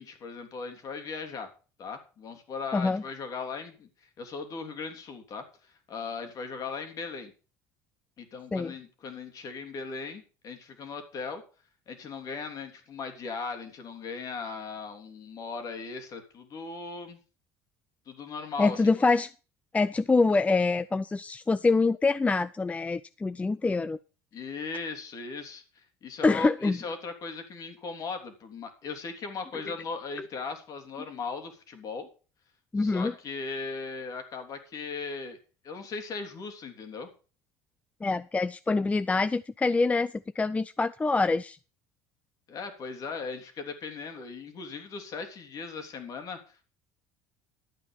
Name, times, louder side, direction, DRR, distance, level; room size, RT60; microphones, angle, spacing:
voice 1, 0.0-1.5 1.8-5.5 5.9-7.3 8.2-11.4 11.9-17.2 18.1-19.0 24.3-32.1 32.8-35.4 35.6-37.1 42.5-46.6, left 4 dB, 50° left, 6 dB, 3.2 m, -38 dB
voice 2, 2.7-3.0 8.5-8.7 18.6-19.3 19.7-24.0 26.2-26.8 32.7-33.1 38.0-41.6, left 3 dB, 15° left, 16 dB, 0.5 m, -25 dB
12.0 x 8.9 x 5.2 m, 0.36 s
hypercardioid pair, 70°, 8 cm